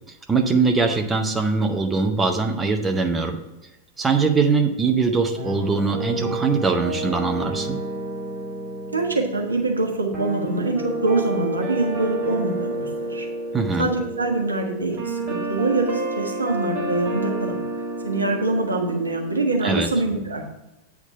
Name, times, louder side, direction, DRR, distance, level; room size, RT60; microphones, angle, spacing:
voice 1, 0.3-3.4 4.0-7.8 13.5-13.9 19.6-19.9, right 4 dB, 15° right, 4 dB, 0.8 m, -22 dB
sound 1, 5.4-19.8, right 1 dB, 40° right, 1.7 m, -30 dB
voice 2, 8.9-13.3 13.8-17.6 18.0-20.5, right 2 dB, 80° right, 2 dB, 1.2 m, -24 dB
8.3 x 3.6 x 5.4 m, 0.99 s
figure-of-eight pair, 90°, 0 cm